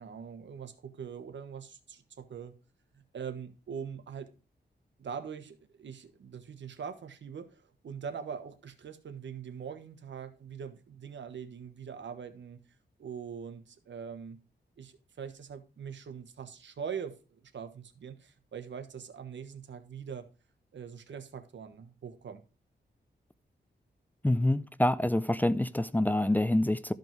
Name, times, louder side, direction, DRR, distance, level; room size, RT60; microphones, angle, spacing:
voice 1, 0.0-2.5 2.9-4.3 5.0-12.6 13.0-14.4 14.8-20.3 20.7-22.4, right 7 dB, 80° right, 1.3 m, -42 dB
voice 2, 24.2-26.9, left 1 dB, 10° left, 0.5 m, -26 dB
13.0 x 5.3 x 4.6 m
wide cardioid pair, 90°, 19 cm